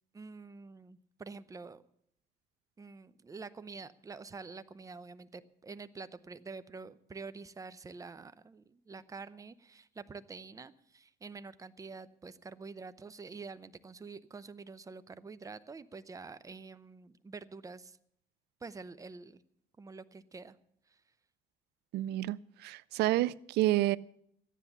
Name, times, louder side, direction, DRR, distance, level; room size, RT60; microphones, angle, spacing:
voice 1, 0.1-1.8 2.8-18.0 18.6-19.4 19.8-20.6 20.9-21.0, right 4 dB, 20° right, 14 dB, 0.7 m, -47 dB
voice 2, 21.9-24.0, right 16 dB, 80° right, 21 dB, 0.4 m, -29 dB
14.0 x 10.0 x 7.1 m, 0.72 s
cardioid pair, 110°, 17 cm